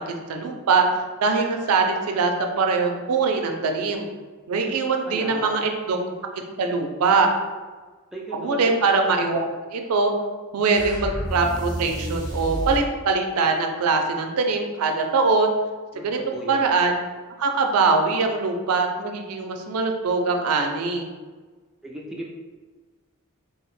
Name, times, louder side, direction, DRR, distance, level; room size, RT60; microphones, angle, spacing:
voice 1, 0.1-0.9 1.2-4.1 4.5-6.0 6.6-7.3 8.3-9.4 9.7-10.1 10.5-15.5 16.0-17.0 17.4-21.1, right 4 dB, 85° right, 4 dB, 0.4 m, -22 dB
voice 2, 5.0-5.6 8.1-8.9 15.9-16.0 16.3-16.7 21.8-22.3, right 1 dB, ahead, -3 dB, 0.3 m, -36 dB
sound 1, 10.7-12.9, right 1 dB, 20° left, 0.7 m, -30 dB
2.8 x 2.0 x 3.1 m, 1.3 s
head